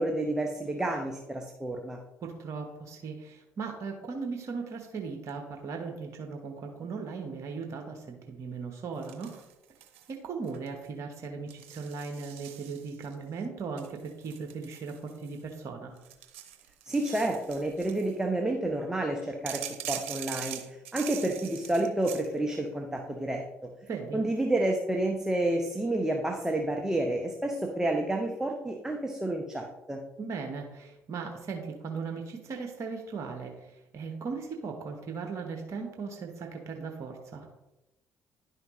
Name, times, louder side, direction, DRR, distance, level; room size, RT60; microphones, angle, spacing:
voice 1, 0.0-2.0 16.9-23.4 24.1-30.0, right 1 dB, 10° right, 2 dB, 1.0 m, -30 dB
voice 2, 2.2-9.4 10.1-15.9 23.9-24.2 30.2-37.5, right 5 dB, 50° right, 2 dB, 1.2 m, -38 dB
sound 1, 9.0-10.1 10.4-10.9 11.5-13.1 13.8-15.5 16.0-18.1 19.5-22.3, right 10 dB, 80° right, 0.8 m, -42 dB
10.5 x 5.6 x 3.1 m, 0.98 s
hypercardioid pair, 55°, 7 cm